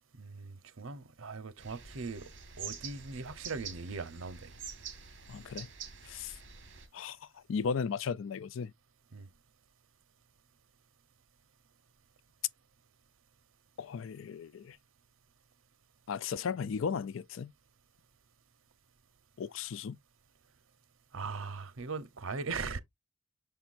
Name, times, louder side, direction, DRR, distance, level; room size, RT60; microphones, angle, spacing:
voice 1, 0.2-2.3 2.6-4.5 9.1-9.3 21.1-22.8, right 4 dB, 90° right, 0.9 m, -39 dB
sound 1, 1.6-6.9, right 7 dB, 60° right, 2.4 m, -46 dB
voice 2, 5.3-5.7 6.0-6.4 6.9-8.7 13.8-14.8 16.1-17.5 19.4-20.0, left 6 dB, 75° left, 0.4 m, -36 dB
6.7 x 5.7 x 2.5 m
head